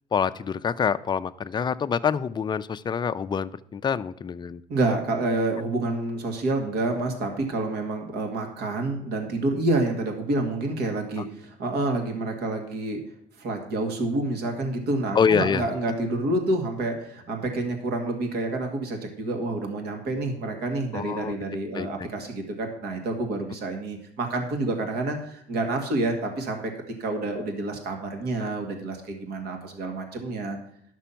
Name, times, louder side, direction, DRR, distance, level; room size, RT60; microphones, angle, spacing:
voice 1, 0.1-4.6 11.2-11.3 15.1-15.7 20.9-21.3 21.7-21.9, left 6 dB, 25° left, 12 dB, 0.4 m, -26 dB
voice 2, 4.7-13.0 13.4-26.7 27.0-30.6, right 2 dB, 70° right, 4 dB, 2.0 m, -28 dB
11.5 x 6.1 x 5.7 m, 0.70 s
cardioid pair, 110°, 17 cm